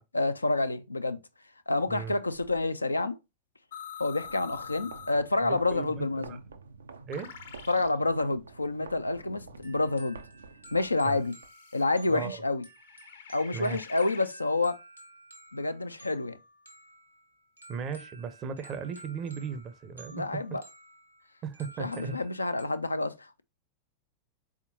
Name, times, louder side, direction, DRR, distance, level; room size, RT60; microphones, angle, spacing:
voice 1, 0.1-1.2 1.7-3.2 4.0-6.4 7.7-10.2 10.7-11.3 11.7-12.6 13.3-14.8 15.5-16.4 20.1-20.6 21.8-23.4, left 2 dB, 80° left, 0.3 m, -28 dB
sound 1, 2.3-2.6 3.7-5.2 5.8-6.0 7.1-8.0 8.7-10.4 11.3-11.8 12.7-14.3, left 8 dB, 65° left, 0.7 m, -46 dB
sound 2, 4.2-11.5, right 4 dB, 70° right, 0.4 m, -49 dB
voice 2, 5.4-6.4 7.0-7.3 11.0-11.2 12.1-12.4 13.5-13.8 17.7-20.4 21.4-22.2, right 6 dB, 30° right, 0.6 m, -37 dB
s a birch stood in a field, 9.6-22.7, right 1 dB, 90° right, 0.9 m, -53 dB
4.3 x 3.6 x 2.6 m
figure-of-eight pair, 90°, 0 cm